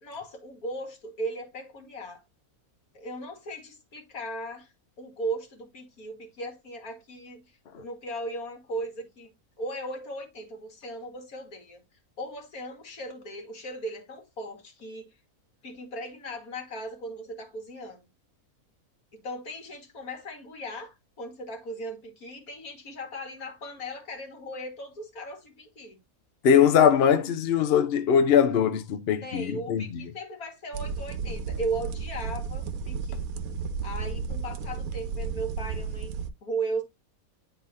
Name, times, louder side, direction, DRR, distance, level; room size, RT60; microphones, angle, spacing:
voice 1, 0.0-2.2 2.9-4.7 5.0-7.4 7.7-11.8 12.2-15.2 15.6-18.1 19.1-26.0 29.2-33.2 33.8-36.8, right 2 dB, 75° left, 2.2 m, -37 dB
voice 2, 26.4-29.8, left 8 dB, 55° left, 0.8 m, -21 dB
sound 1, 30.7-36.3, right 5 dB, 75° right, 1.2 m, -33 dB
10.0 x 4.0 x 2.6 m
omnidirectional pair, 1.5 m